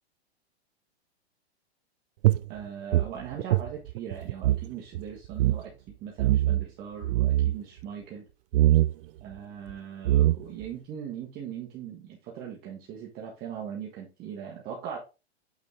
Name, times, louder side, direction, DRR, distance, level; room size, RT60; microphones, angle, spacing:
sound 1, 2.2-4.7 4.9-5.0 5.3-5.6 6.2-6.7 7.0-7.6 8.5-8.9 9.7-9.8 10.0-10.7, right 14 dB, 55° right, 0.5 m, -23 dB
voice 1, 2.5-5.7 6.0-8.3 9.2-15.0, right 8 dB, 30° right, -1 dB, 1.6 m, -40 dB
8.5 x 4.2 x 3.3 m, 0.29 s
hypercardioid pair, 145°, 33 cm